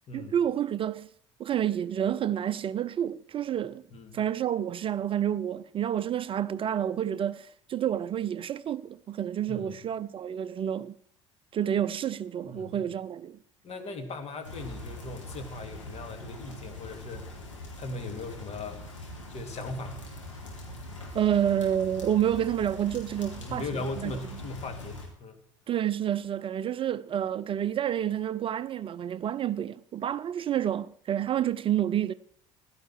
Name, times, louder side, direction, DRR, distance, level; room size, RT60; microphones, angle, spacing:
voice 1, 0.1-1.1 1.4-3.8 4.1-11.0 11.5-13.4 21.1-24.2 25.7-32.1, right 10 dB, 35° right, 0.5 m, -29 dB
voice 2, 3.9-4.2 9.5-9.7 12.4-12.8 13.6-17.3 17.8-18.8 19.3-20.0 23.3-25.4, left 2 dB, 45° left, 2.6 m, -38 dB
sound 1, 14.4-25.1, left 1 dB, 85° left, 3.9 m, -42 dB
16.5 x 12.0 x 4.7 m
figure-of-eight pair, 65°, 15 cm